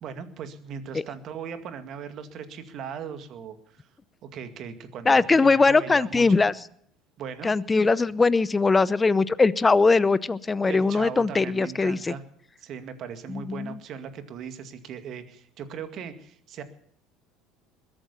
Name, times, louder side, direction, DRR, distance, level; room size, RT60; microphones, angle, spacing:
voice 1, 0.0-3.9 4.2-6.4 7.2-7.5 10.6-12.2 12.6-16.6, right 7 dB, 50° right, 9 dB, 2.0 m, -38 dB
voice 2, 5.1-6.5 7.4-12.1 13.3-13.7, left 4 dB, 20° left, 18 dB, 0.7 m, -21 dB
21.0 x 8.9 x 7.1 m, 0.67 s
hypercardioid pair, 70°, 0 cm